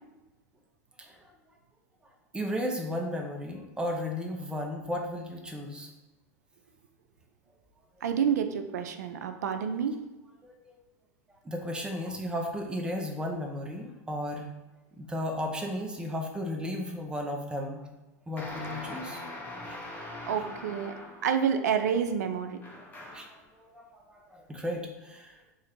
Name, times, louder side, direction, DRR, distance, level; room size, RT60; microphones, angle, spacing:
voice 1, 2.3-5.9 10.4-10.8 11.4-14.5 15.0-17.8 18.3-19.2 19.7-19.8 20.4-20.5 22.9-25.4, left 1 dB, 10° right, 1 dB, 0.6 m, -35 dB
voice 2, 8.0-9.9 20.0-20.9 21.2-22.6, right 7 dB, 85° right, 7 dB, 0.4 m, -29 dB
sound 1, 18.4-21.4 22.6-23.4, left 1 dB, 20° left, 0.8 m, -41 dB
2.9 x 2.4 x 4.3 m, 1.1 s
hypercardioid pair, 110°, 9 cm